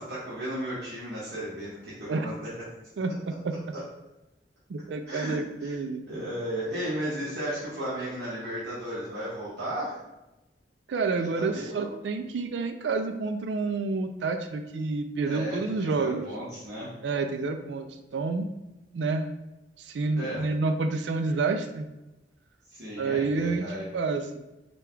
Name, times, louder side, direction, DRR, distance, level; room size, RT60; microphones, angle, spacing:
voice 1, 0.0-2.5 5.1-5.8 6.1-10.0 11.4-11.9 15.2-16.9 20.2-20.5 22.7-23.9, equal, 65° right, -9 dB, 1.4 m, -35 dB
voice 2, 4.7-6.2 10.9-16.3 17.0-18.5 18.9-19.3 19.8-21.9 23.0-23.6 23.9-24.3, right 4 dB, 80° right, 7 dB, 0.4 m, -29 dB
5.0 x 2.3 x 4.5 m, 0.97 s
head